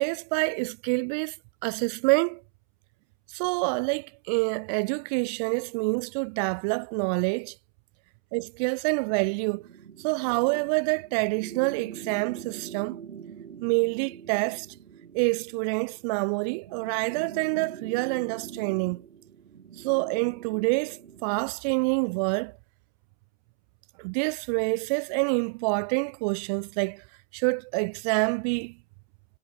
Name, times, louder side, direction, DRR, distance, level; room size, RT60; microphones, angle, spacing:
voice 1, 0.0-1.3 1.6-2.4 3.3-7.5 8.3-9.6 10.0-13.0 13.6-14.7 15.1-19.0 19.8-22.5 24.0-27.0 27.3-28.7, right 34 dB, 30° right, 3.5 m, -27 dB
sound 1, 9.2-21.6, right 7 dB, 65° right, 5.7 m, -45 dB
figure-of-eight pair, 130°, 37 cm